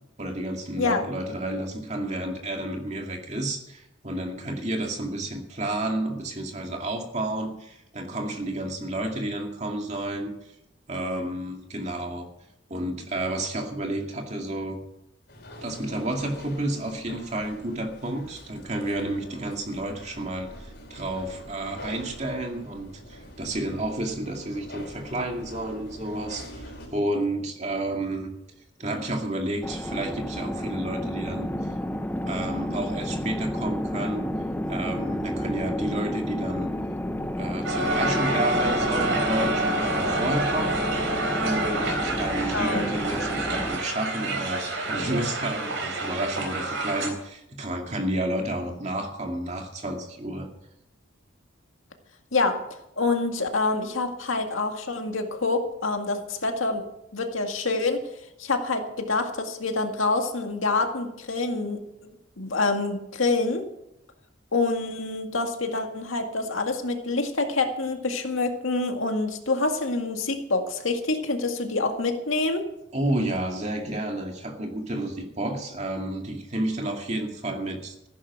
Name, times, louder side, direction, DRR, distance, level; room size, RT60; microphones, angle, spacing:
voice 1, 0.2-10.3 10.9-12.3 12.7-14.8 15.6-26.6 26.9-28.3 28.8-31.5 32.3-34.3 34.7-36.7 37.4-40.7 41.4-50.5 72.9-78.1, right 1 dB, 35° right, 2 dB, 2.2 m, -31 dB
sound 1, 15.3-26.9, equal, 55° left, 4.8 m, -45 dB
sound 2, 29.6-43.8, equal, 10° left, 0.6 m, -31 dB
Crowd, 37.6-47.1, right 2 dB, 75° right, 4.0 m, -28 dB
voice 2, 42.5-42.9 52.3-52.6 53.0-56.9 57.1-58.0 58.4-63.6 64.5-72.7, left 3 dB, 85° left, 4 dB, 2.0 m, -26 dB
15.0 x 11.0 x 6.0 m, 0.84 s
head